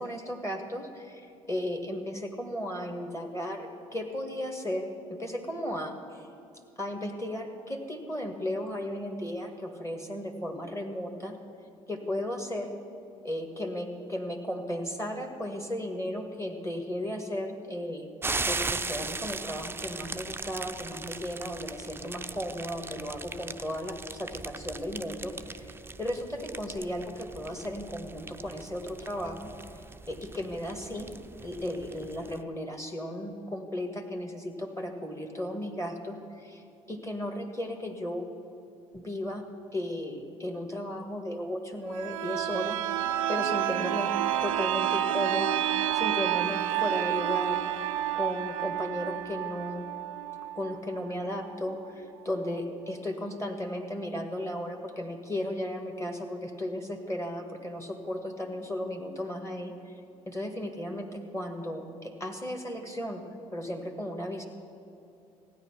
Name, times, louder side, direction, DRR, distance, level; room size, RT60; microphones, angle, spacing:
voice 1, 0.0-6.3 6.8-11.4 11.9-12.7 13.2-18.1 18.5-29.5 30.1-31.1 31.4-38.3 38.9-39.4 39.7-42.8 43.3-44.1 44.4-45.6 45.9-47.6 48.1-49.9 50.6-59.7 60.3-63.2 63.5-64.4, left 1 dB, 15° left, 3 dB, 1.7 m, -35 dB
sound 1, 18.2-32.4, right 3 dB, 15° right, 0.5 m, -39 dB
sound 2, 41.9-51.5 51.9-52.0, right 12 dB, 80° right, 0.4 m, -30 dB
15.5 x 9.7 x 5.8 m, 2.8 s
hypercardioid pair, 55°, 17 cm